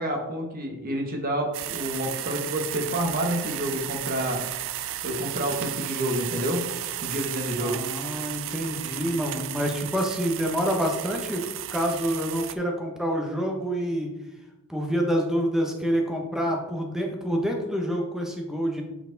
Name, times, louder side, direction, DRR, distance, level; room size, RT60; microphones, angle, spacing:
voice 1, 0.0-4.4 5.0-6.6 7.0-7.8, right 1 dB, 40° right, 2 dB, 1.3 m, -28 dB
sound 1, 1.5-12.5, right 12 dB, 60° right, 0.4 m, -34 dB
voice 2, 7.6-14.1 14.7-18.8, equal, ahead, 1 dB, 1.0 m, -27 dB
8.0 x 4.5 x 4.0 m, 0.99 s
head